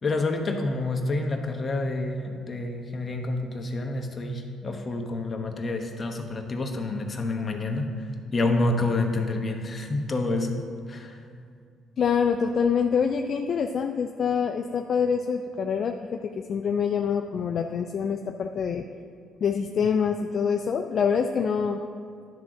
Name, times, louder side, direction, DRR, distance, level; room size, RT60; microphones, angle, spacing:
voice 1, 0.0-10.6 10.9-11.2, left 2 dB, 35° left, 3 dB, 1.0 m, -28 dB
voice 2, 12.0-15.9 16.4-18.8 19.4-21.8, left 6 dB, 55° left, 5 dB, 0.4 m, -25 dB
10.5 x 3.7 x 6.0 m, 2.3 s
cardioid pair, 85°, 0 cm